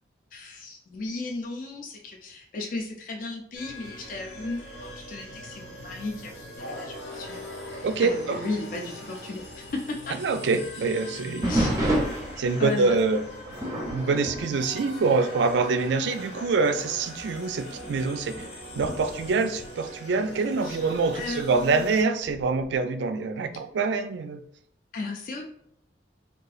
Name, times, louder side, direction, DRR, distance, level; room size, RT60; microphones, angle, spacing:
voice 1, 0.3-7.5 8.0-10.2 11.4-11.8 12.6-13.0 20.6-20.8 21.1-21.9 24.9-25.5, left 3 dB, 45° left, 1 dB, 0.4 m, -35 dB
sound 1, 3.5-22.0, left 1 dB, 85° left, 1.2 m, -42 dB
voice 2, 7.8-8.4 10.2-11.5 12.4-13.2 13.9-18.5 18.7-24.4, right 4 dB, 75° right, 9 dB, 0.3 m, -25 dB
sound 2, 11.4-15.6 15.9-16.2 16.9-17.0 17.7-20.4 22.2-22.7, right 1 dB, 20° right, 0.5 m, -31 dB
3.7 x 2.3 x 2.4 m, 0.70 s
head